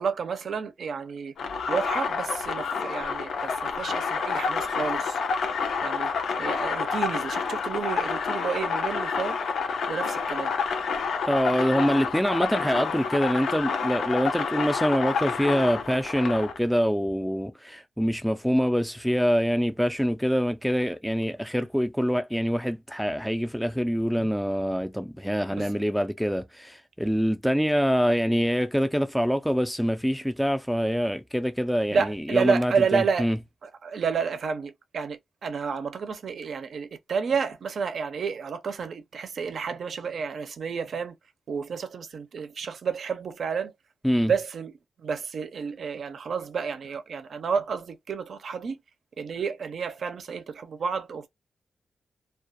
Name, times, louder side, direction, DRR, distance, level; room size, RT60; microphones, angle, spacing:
voice 1, 0.0-1.3 1.7-5.2 5.8-6.1 6.4-9.4 9.9-10.5 25.6-25.7 31.9-33.3 33.8-41.1 41.5-43.7 44.3-44.7 45.0-48.8 49.2-51.3, right 6 dB, 65° right, 0.5 m, -30 dB
sound 1, 1.4-16.6, left 5 dB, 90° left, 0.4 m, -29 dB
voice 2, 11.3-33.4 44.0-44.3, equal, ahead, 0.3 m, -25 dB
2.3 x 2.3 x 2.5 m
wide cardioid pair, 120°, 0 cm